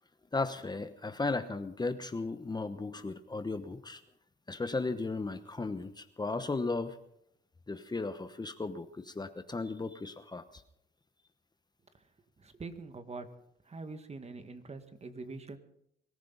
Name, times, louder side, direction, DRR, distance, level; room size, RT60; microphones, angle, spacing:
voice 1, 0.3-4.0 4.5-7.0 7.7-10.6, left 3 dB, 20° left, 10 dB, 1.0 m, -35 dB
voice 2, 12.4-13.3 13.7-15.6, right 3 dB, 30° right, 8 dB, 1.9 m, -44 dB
23.5 x 15.0 x 4.1 m, 0.75 s
cardioid pair, 90°, 20 cm